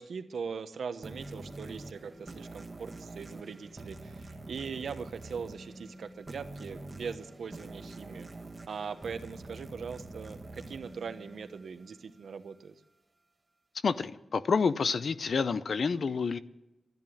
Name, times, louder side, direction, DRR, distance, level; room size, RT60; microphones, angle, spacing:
voice 1, 0.0-8.3 8.7-12.7, right 6 dB, 80° right, 10 dB, 1.1 m, -41 dB
sound 1, 1.0-12.2, right 2 dB, 20° right, 1.4 m, -46 dB
voice 2, 13.8-16.4, left 5 dB, 55° left, 14 dB, 0.7 m, -28 dB
13.5 x 10.5 x 9.8 m, 0.96 s
wide cardioid pair, 170°, 0 cm